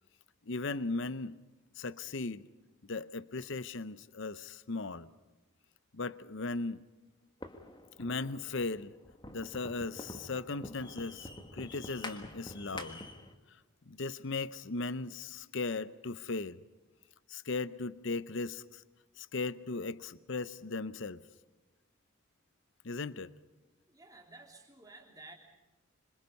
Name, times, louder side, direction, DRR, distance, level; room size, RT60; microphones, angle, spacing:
voice 1, 0.5-1.4 1.8-2.5 2.8-5.1 5.9-6.8 8.0-8.9 9.3-13.0 13.9-16.6 17.3-18.8 19.2-21.2 22.8-23.3, left 3 dB, 55° left, 0.7 m, -37 dB
sound 1, 7.4-13.3, left 2 dB, 20° left, 1.6 m, -47 dB
voice 2, 23.9-25.3, right 2 dB, 15° right, 3.3 m, -53 dB
26.5 x 26.0 x 5.4 m
head